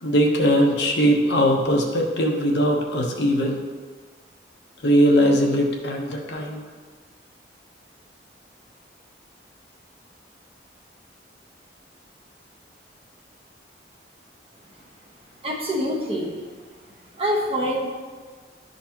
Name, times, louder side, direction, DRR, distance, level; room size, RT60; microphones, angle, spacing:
voice 1, 0.0-3.6 4.8-6.6, equal, 75° left, 0 dB, 1.0 m, -20 dB
voice 2, 15.4-16.3 17.2-17.9, equal, 30° right, -2 dB, 1.1 m, -25 dB
11.5 x 4.0 x 3.0 m, 1.5 s
head